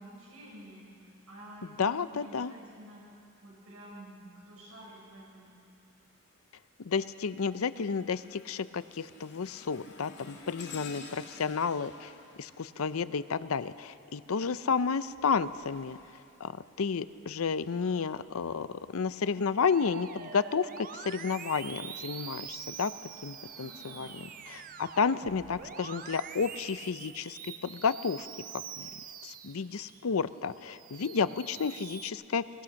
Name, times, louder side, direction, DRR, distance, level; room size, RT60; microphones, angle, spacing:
voice 1, 0.0-3.0 3.4-5.5 17.7-17.9 23.5-24.1 31.0-31.5, equal, 75° right, -4 dB, 6.9 m, -50 dB
voice 2, 1.8-2.5 6.8-12.1 12.4-16.0 16.4-22.9 23.2-28.3 28.8-28.9 29.2-32.6, left 5 dB, 80° left, 14 dB, 0.6 m, -31 dB
sound 1, 6.0-6.4 6.9-13.7 15.0-17.2 17.8-18.0 18.9-19.0, left 4 dB, 50° left, 2.1 m, -51 dB
Musical instrument, 19.6-30.1 30.5-32.1, right 8 dB, 40° right, 0.6 m, -45 dB
sound 2, 21.4-26.7, equal, ahead, 3.5 m, -60 dB
21.0 x 20.0 x 6.4 m, 2.5 s
head